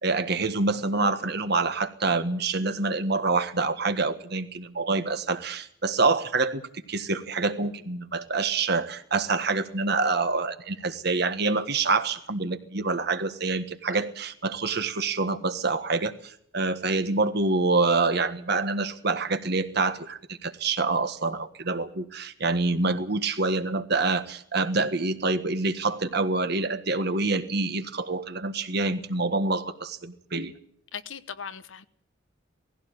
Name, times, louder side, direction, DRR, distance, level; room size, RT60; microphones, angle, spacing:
voice 1, 0.0-6.6 6.9-30.5, right 3 dB, 55° right, 1.5 m, -26 dB
voice 2, 30.9-31.9, left 7 dB, 85° left, 1.0 m, -38 dB
19.0 x 15.5 x 8.9 m
head